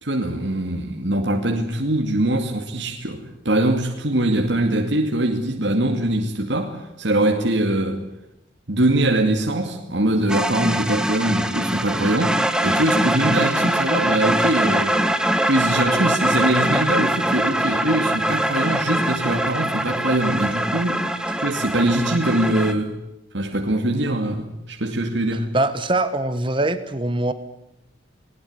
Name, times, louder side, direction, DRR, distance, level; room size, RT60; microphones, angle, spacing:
voice 1, 0.0-8.0 8.7-15.0 15.4-21.0 21.4-22.9 23.3-25.5, right 1 dB, 65° right, 2 dB, 2.4 m, -22 dB
sound 1, 10.3-22.7, right 1 dB, 5° right, 1.4 m, -22 dB
voice 2, 25.5-27.3, right 2 dB, 25° right, 12 dB, 1.3 m, -22 dB
20.5 x 20.0 x 9.7 m, 0.88 s
head